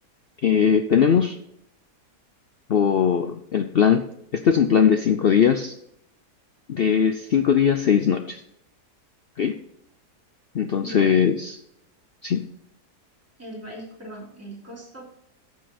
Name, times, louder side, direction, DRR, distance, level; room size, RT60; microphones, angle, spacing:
voice 1, 0.4-1.4 2.7-4.1 4.3-5.8 6.7-8.4 9.4-9.5 10.5-11.6 12.2-12.5, left 7 dB, 70° left, 7 dB, 0.5 m, -20 dB
voice 2, 10.8-11.1 13.4-15.0, right 1 dB, 10° right, -5 dB, 3.2 m, -39 dB
14.0 x 5.4 x 4.2 m, 0.76 s
omnidirectional pair, 1.7 m